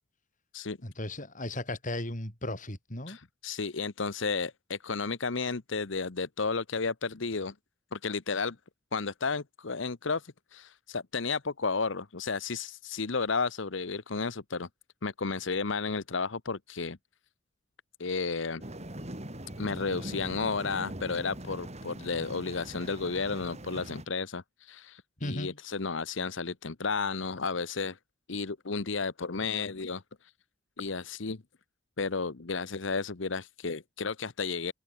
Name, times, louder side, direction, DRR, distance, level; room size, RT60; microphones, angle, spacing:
voice 1, 0.8-3.2 25.2-25.6, left 1 dB, 40° left, 6.5 m, -36 dB
voice 2, 3.1-7.5 7.9-8.6 8.9-14.7 15.0-17.0 18.0-18.6 19.6-28.0 28.3-30.0 30.8-31.4 32.0-34.7, left 4 dB, 65° left, 1.0 m, -32 dB
sound 1, 18.6-24.1, right 1 dB, 35° right, 5.0 m, -42 dB
open air
head